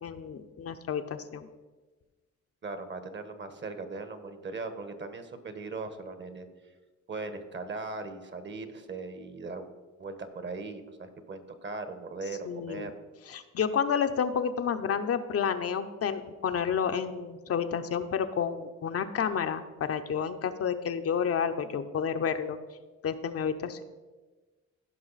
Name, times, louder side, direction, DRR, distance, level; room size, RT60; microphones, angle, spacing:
voice 1, 0.0-1.5 12.5-12.9 13.3-22.6 23.0-23.8, left 7 dB, 50° left, 8 dB, 0.7 m, -30 dB
voice 2, 2.6-6.5 7.1-9.7 10.0-12.9, right 3 dB, 40° right, 9 dB, 1.2 m, -39 dB
16.0 x 5.4 x 4.1 m, 1.3 s
cardioid pair, 90°, 30 cm